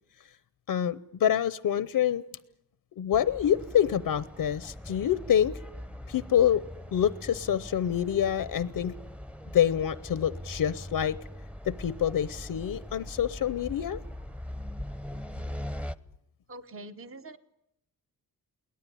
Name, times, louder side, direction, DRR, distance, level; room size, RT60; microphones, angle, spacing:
voice 1, 0.7-2.2 3.0-5.6 6.1-6.6 6.9-8.9 9.5-11.2 11.7-14.0, left 9 dB, 80° left, 16 dB, 0.8 m, -26 dB
sound 1, 3.1-16.0, left 1 dB, 5° right, 0.9 m, -41 dB
voice 2, 16.5-17.4, right 2 dB, 40° right, 10 dB, 1.2 m, -44 dB
22.5 x 18.0 x 9.9 m, 0.81 s
cardioid pair, 80°, 35 cm